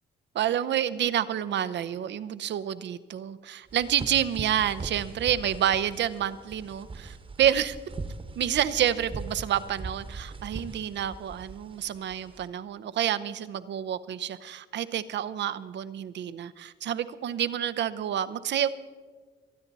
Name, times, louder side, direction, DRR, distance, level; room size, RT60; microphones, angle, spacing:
voice 1, 0.3-7.8 8.4-18.7, right 10 dB, 65° right, 14 dB, 0.7 m, -28 dB
sound 1, 3.7-12.5, right 3 dB, 25° right, 1.2 m, -41 dB
25.0 x 9.6 x 4.1 m, 1.5 s
cardioid pair, 90°, 20 cm